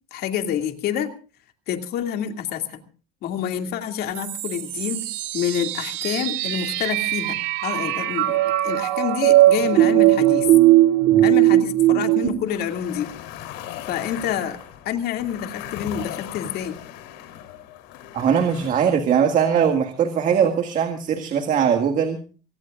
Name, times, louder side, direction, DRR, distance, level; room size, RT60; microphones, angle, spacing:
voice 1, 0.1-1.1 1.7-2.8 3.2-5.0 5.3-10.5 11.2-13.1 13.9-14.6 14.8-16.8, left 9 dB, 55° left, 5 dB, 2.5 m, -27 dB
sound 1, 4.2-12.3, right 15 dB, 70° right, 2.1 m, -19 dB
sound 2, 12.5-18.7, left 11 dB, 75° left, 3.5 m, -38 dB
voice 2, 18.1-22.2, right 7 dB, 45° right, 6 dB, 1.9 m, -20 dB
24.5 x 18.5 x 2.5 m, 0.37 s
cardioid pair, 130°, 19 cm